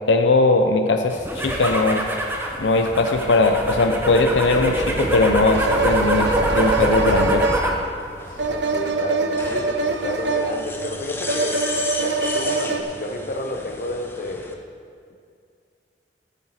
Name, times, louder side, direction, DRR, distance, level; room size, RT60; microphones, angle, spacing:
voice 1, 0.1-1.2 1.4-2.0 2.6-7.5, left 2 dB, 85° left, 5 dB, 0.6 m, -19 dB
sound 1, 1.1-7.9 8.2-8.8, right 1 dB, 10° right, 1.2 m, -24 dB
sound 2, 4.8-4.9 5.5-12.8, right 3 dB, 75° right, 0.7 m, -24 dB
sound 3, 6.9-14.5, left 2 dB, 15° left, 0.8 m, -35 dB
voice 2, 8.2-11.6 12.0-14.6 15.1-15.2, left 1 dB, 50° left, 3 dB, 1.0 m, -31 dB
13.5 x 9.1 x 4.3 m, 2.3 s
head